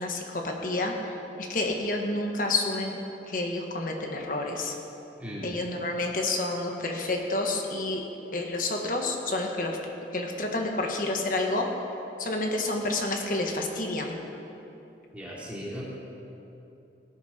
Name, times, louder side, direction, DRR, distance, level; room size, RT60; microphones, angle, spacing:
voice 1, 0.0-3.0 3.3-4.7 5.4-8.0 8.3-9.8 10.1-11.6 12.2-14.1, left 2 dB, 50° left, 2 dB, 1.4 m, -29 dB
voice 2, 5.2-5.5 15.1-15.8, equal, 10° right, -6 dB, 2.6 m, -37 dB
18.0 x 10.5 x 4.4 m, 2.9 s
head